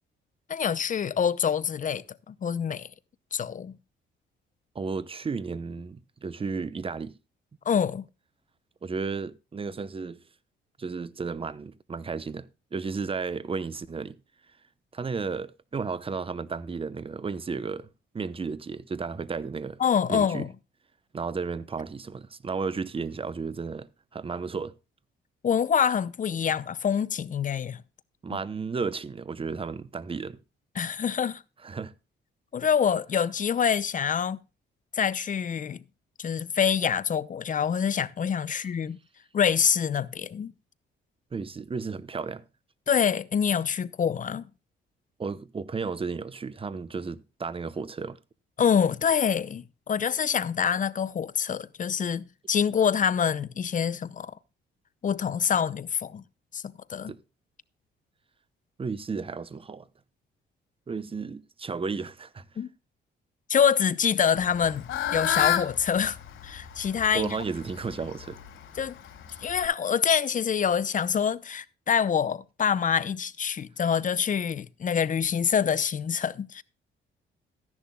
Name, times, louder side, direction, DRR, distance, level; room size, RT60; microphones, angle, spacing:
voice 1, 0.5-2.9 3.3-3.7 7.7-8.0 19.8-20.5 25.4-27.8 30.8-31.4 32.5-34.4 34.9-35.8 36.2-39.0 39.3-40.5 42.9-44.5 48.6-54.3 55.0-56.2 56.5-56.6 56.9-57.1 62.6-62.7 63.5-66.2 66.4-67.4 68.7-69.0 69.4-76.6, left 7 dB, 40° left, 0.7 m, -26 dB
voice 2, 4.7-7.1 8.8-10.2 10.8-12.5 12.7-14.2 14.9-17.9 18.1-19.8 20.1-20.5 21.1-23.9 24.1-24.7 28.2-30.4 31.6-31.9 38.5-38.6 41.3-42.4 45.2-48.2 57.1-57.2 58.8-59.9 60.9-62.4 67.1-68.4, right 5 dB, 25° right, 0.9 m, -33 dB
Fowl / Bird, 64.4-69.7, left 10 dB, 80° left, 3.6 m, -31 dB
14.0 x 10.5 x 2.3 m
cardioid pair, 90°, 20 cm